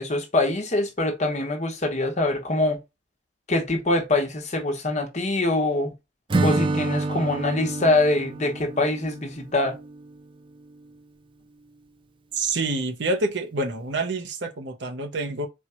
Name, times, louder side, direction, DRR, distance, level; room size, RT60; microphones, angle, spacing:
voice 1, 0.0-2.8 3.5-5.9 6.4-9.7, left 2 dB, 35° left, 1.1 m, -24 dB
Acoustic guitar / Strum, 6.3-10.2, right 3 dB, 25° right, 0.4 m, -28 dB
voice 2, 12.3-15.5, right 2 dB, 60° right, 0.8 m, -27 dB
4.4 x 2.4 x 4.3 m
head